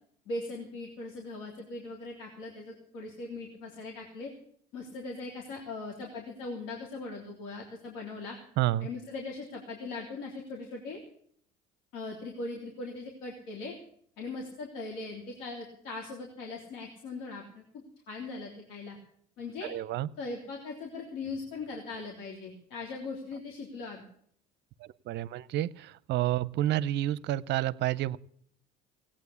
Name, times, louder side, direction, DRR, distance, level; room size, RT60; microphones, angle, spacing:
voice 1, 0.3-4.3 4.7-8.4 8.8-11.0 11.9-13.7 14.2-17.6 18.1-19.0 19.4-19.7 20.2-24.1, left 3 dB, 75° left, 0 dB, 3.2 m, -40 dB
voice 2, 8.6-8.9 19.6-20.1 24.8-28.2, right 14 dB, 60° right, 19 dB, 0.7 m, -30 dB
17.5 x 8.9 x 8.2 m, 0.63 s
supercardioid pair, 75°, 20 cm